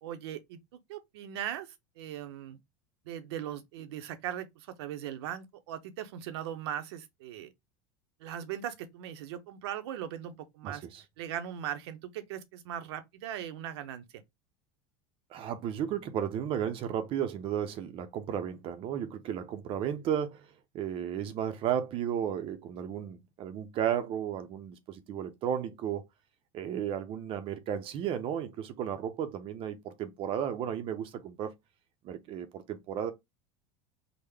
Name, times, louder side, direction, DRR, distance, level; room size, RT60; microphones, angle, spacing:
voice 1, 0.0-0.6 0.9-2.6 3.1-7.5 8.2-10.9 11.2-14.0, right 10 dB, 85° right, 0.7 m, -39 dB
voice 2, 10.6-11.0 15.3-26.0 26.5-31.5 32.0-33.1, right 9 dB, 40° right, 0.5 m, -34 dB
3.6 x 2.1 x 3.3 m
supercardioid pair, 125°, 13 cm